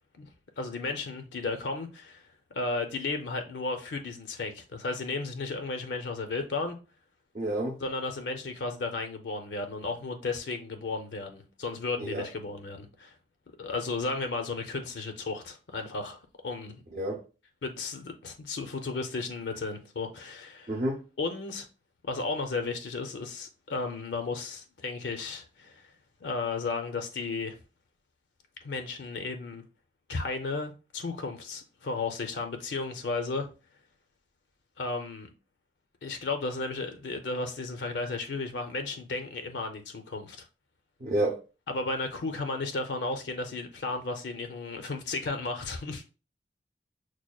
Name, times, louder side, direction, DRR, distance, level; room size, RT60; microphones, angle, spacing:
voice 1, 0.6-2.2 2.5-6.8 7.8-13.1 13.6-16.8 17.6-20.7 21.2-21.7 22.0-25.9 26.2-27.5 28.6-29.6 30.1-33.5 34.8-35.3 36.0-40.5 41.7-46.0, left 3 dB, 75° left, 0.5 m, -34 dB
voice 2, 7.3-7.8 12.0-12.2 16.9-17.2 20.7-21.0 41.0-41.4, right 1 dB, 40° right, 0.5 m, -29 dB
6.1 x 2.2 x 2.3 m
head